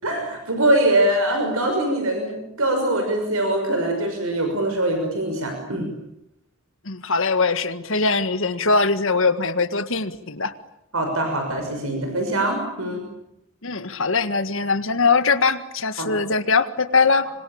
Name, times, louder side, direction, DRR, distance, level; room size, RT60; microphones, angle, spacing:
voice 1, 0.0-5.9 10.9-13.0 16.0-16.1, right 1 dB, 70° right, 4 dB, 6.3 m, -23 dB
voice 2, 6.9-10.5 13.6-17.3, left 4 dB, 60° left, 10 dB, 1.8 m, -21 dB
26.0 x 25.5 x 8.9 m, 0.81 s
head